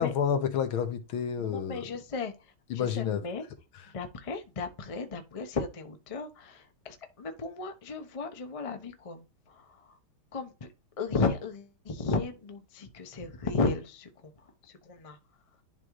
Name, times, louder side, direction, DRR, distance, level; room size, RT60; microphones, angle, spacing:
voice 1, 0.0-1.8 2.7-3.2, left 8 dB, 80° left, 1.8 m, -29 dB
voice 2, 1.4-3.4 3.9-10.0 10.3-10.7 11.0-15.2, left 4 dB, 50° left, 0.4 m, -35 dB
11.0 x 3.7 x 3.1 m
omnidirectional pair, 2.3 m